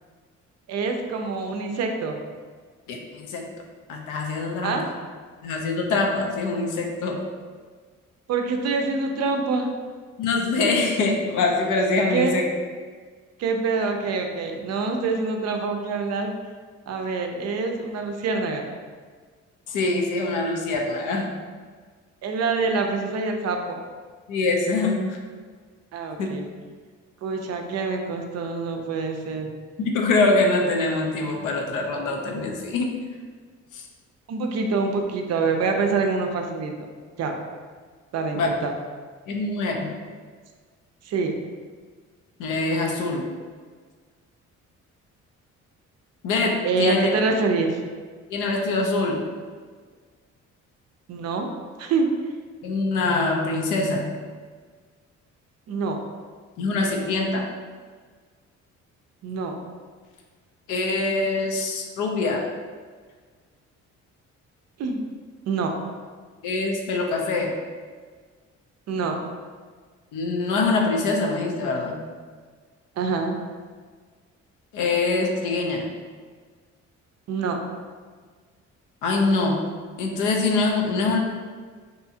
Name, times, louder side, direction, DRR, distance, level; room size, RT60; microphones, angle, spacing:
voice 1, 0.7-2.2 4.6-4.9 8.3-9.7 12.1-12.3 13.4-16.3 16.9-18.7 22.2-23.8 25.9-26.5 27.2-29.5 34.3-36.7 37.2-37.3 38.1-38.7 41.1-41.3 46.6-47.8 51.1-51.5 51.8-52.1 55.7-56.0 59.2-59.6 64.8-65.0 65.5-65.8 68.9-69.2 73.0-73.4 77.3-77.6, right 4 dB, 60° right, 4 dB, 0.4 m, -25 dB
voice 2, 2.9-3.5 3.9-4.8 5.4-7.3 10.2-12.4 19.7-21.3 24.3-25.2 26.2-26.3 29.8-32.9 33.7-33.8 38.3-38.5 39.3-39.9 42.4-43.3 46.2-47.1 48.3-49.3 52.6-54.2 56.6-57.5 60.7-62.4 66.4-67.6 70.1-72.0 74.7-75.8 79.0-79.6 80.0-81.2, left 3 dB, 85° left, 1 dB, 0.5 m, -24 dB
2.7 x 2.3 x 2.7 m, 1.5 s
cardioid pair, 90°, 30 cm